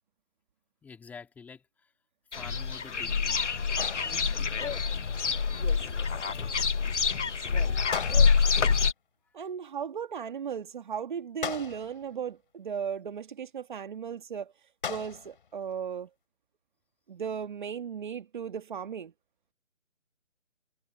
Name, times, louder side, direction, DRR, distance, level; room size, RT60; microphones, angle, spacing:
voice 1, 0.8-1.9 2.3-5.1 9.3-9.4, left 5 dB, 5° left, 3.1 m, -49 dB
sound 1, 2.3-8.9, left 5 dB, 70° left, 1.5 m, -26 dB
sound 2, 3.8-4.6 7.9-8.7 11.4-12.2 14.8-15.5, left 7 dB, 45° left, 4.4 m, -38 dB
voice 2, 5.5-6.1 7.5-7.7 9.3-14.5 14.9-16.1 17.1-19.1, right 7 dB, 40° right, 2.0 m, -36 dB
figure-of-eight pair, 160°, 37 cm